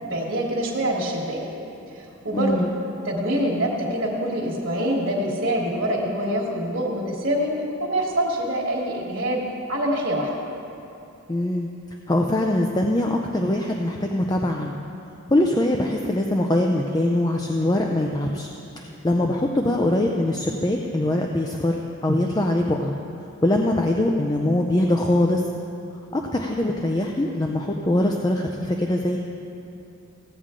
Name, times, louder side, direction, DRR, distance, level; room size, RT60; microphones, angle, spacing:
voice 1, 0.0-1.4 1.9-2.7 3.0-7.5 7.8-9.4 9.7-10.3, right 1 dB, 60° right, -6 dB, 1.5 m, -25 dB
voice 2, 2.3-2.8 11.3-11.7 12.1-14.7 15.3-18.5 18.8-22.9 23.4-25.4 26.1-29.2, left 1 dB, 20° left, 1 dB, 0.5 m, -22 dB
16.0 x 8.6 x 3.7 m, 2.8 s
head